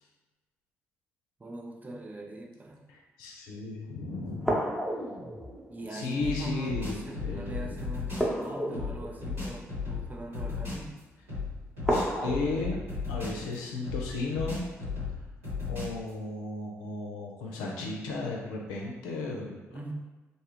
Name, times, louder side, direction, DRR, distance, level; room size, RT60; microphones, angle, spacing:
voice 1, 1.4-2.8 5.7-11.0 19.7-19.9, right 1 dB, 25° right, 1 dB, 0.5 m, -41 dB
voice 2, 3.2-4.6 5.9-7.8 11.9-12.8 13.1-14.7 15.7-19.6, left 3 dB, 75° left, -1 dB, 0.5 m, -34 dB
sound 1, 4.4-6.6 8.2-10.4 11.8-12.3, equal, 5° right, 0.8 m, -32 dB
sound 2, 6.2-8.3 8.7-10.9 11.3-13.5 13.8-16.1, left 4 dB, 90° right, 1.4 m, -35 dB
2.6 x 2.4 x 3.0 m, 1.1 s
hypercardioid pair, 40°, 7 cm